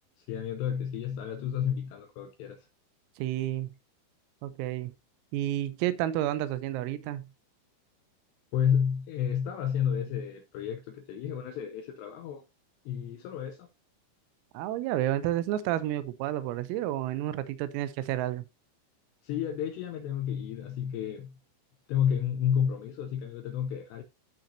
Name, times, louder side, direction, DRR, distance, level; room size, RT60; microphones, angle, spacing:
voice 1, 0.2-2.7 8.5-12.5 12.9-13.7 19.2-21.3 21.9-24.0, left 8 dB, 85° left, 2.4 m, -31 dB
voice 2, 3.2-3.7 4.4-4.9 5.3-7.3 14.6-18.4, right 13 dB, 90° right, 3.5 m, -30 dB
14.5 x 5.8 x 2.7 m
omnidirectional pair, 5.9 m